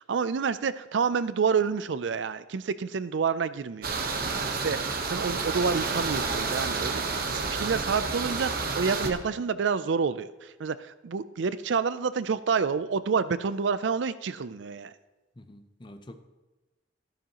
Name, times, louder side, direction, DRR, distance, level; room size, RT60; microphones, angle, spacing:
voice 1, 0.0-4.0 4.5-14.9, right 5 dB, 70° right, 15 dB, 0.4 m, -28 dB
sound 1, 3.8-9.1, right 4 dB, 55° right, 1.1 m, -30 dB
voice 2, 15.4-16.2, left 1 dB, 25° left, 8 dB, 0.7 m, -46 dB
13.5 x 11.5 x 3.0 m, 1.1 s
head